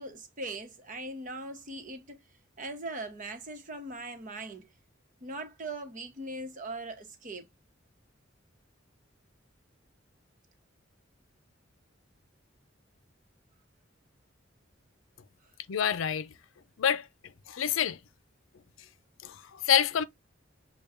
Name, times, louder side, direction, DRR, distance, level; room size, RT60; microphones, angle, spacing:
voice 1, 0.0-2.2 2.6-4.7 5.2-7.5, right 2 dB, 40° right, 1.0 m, -40 dB
voice 2, 15.7-16.3 16.8-17.1 17.5-18.0 19.2-20.0, left 8 dB, 80° left, 0.5 m, -27 dB
6.7 x 2.3 x 3.5 m
head